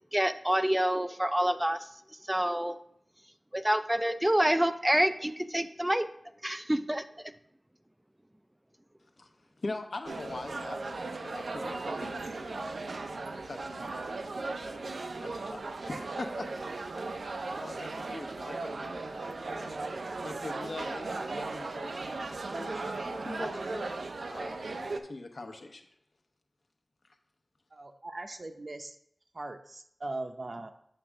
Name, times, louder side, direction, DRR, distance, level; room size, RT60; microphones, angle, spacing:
voice 1, 0.0-1.9 2.3-2.8 3.5-6.1 6.4-7.3, equal, 10° right, 10 dB, 0.3 m, -27 dB
voice 2, 9.6-12.7 13.4-14.1 14.6-16.5 17.6-19.7 20.2-23.9 24.3-25.8, left 2 dB, 70° left, 4 dB, 0.9 m, -43 dB
sound 1, 10.0-25.0, right 3 dB, 90° right, 0.5 m, -37 dB
voice 3, 27.7-28.9 29.3-30.7, right 2 dB, 50° right, 7 dB, 0.6 m, -40 dB
7.8 x 3.5 x 6.4 m, 0.71 s
wide cardioid pair, 75°, 0 cm